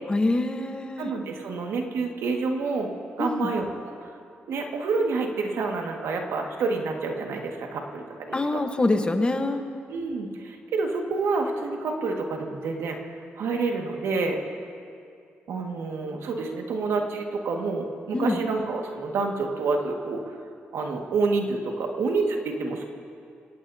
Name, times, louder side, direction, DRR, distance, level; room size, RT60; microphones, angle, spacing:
voice 1, 0.1-1.1 3.2-3.5 8.3-9.6 18.1-18.4, left 2 dB, 25° left, 6 dB, 1.2 m, -25 dB
voice 2, 1.0-3.7 4.0-4.1 4.5-8.6 9.9-13.0 13.4-14.4 15.5-20.2 20.7-22.8, right 4 dB, 90° right, 2 dB, 1.8 m, -28 dB
25.0 x 18.5 x 2.8 m, 2.4 s
cardioid pair, 95°, 4 cm